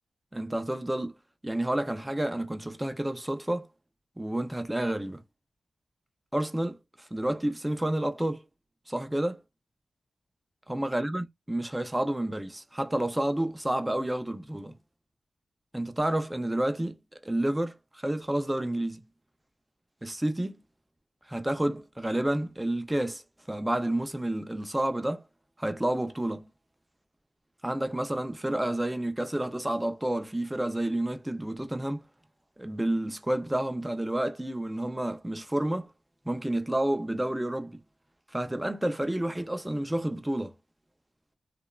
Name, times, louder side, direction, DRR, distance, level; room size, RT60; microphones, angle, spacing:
voice 1, 0.3-1.2 1.4-3.7 4.2-5.2 6.3-8.4 8.9-9.4 10.7-14.7 15.7-17.0 17.2-19.0 20.0-20.6 21.3-25.2 25.6-26.5 27.6-32.0 32.6-35.9 36.3-37.8 38.3-40.5, right 1 dB, 10° right, 0.4 m, -30 dB
2.9 x 2.1 x 2.2 m
wide cardioid pair, 125°, 0 cm